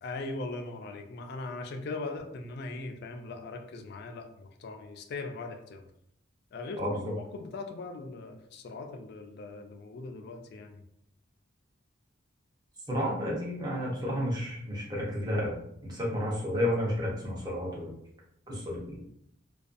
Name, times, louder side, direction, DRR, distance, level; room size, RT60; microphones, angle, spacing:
voice 1, 0.0-5.9 6.5-10.8, left 3 dB, 55° left, 5 dB, 0.3 m, -40 dB
voice 2, 6.8-7.1 12.9-15.6 15.8-17.9 18.5-19.0, equal, 20° right, -4 dB, 0.7 m, -31 dB
2.5 x 2.3 x 2.4 m, 0.73 s
head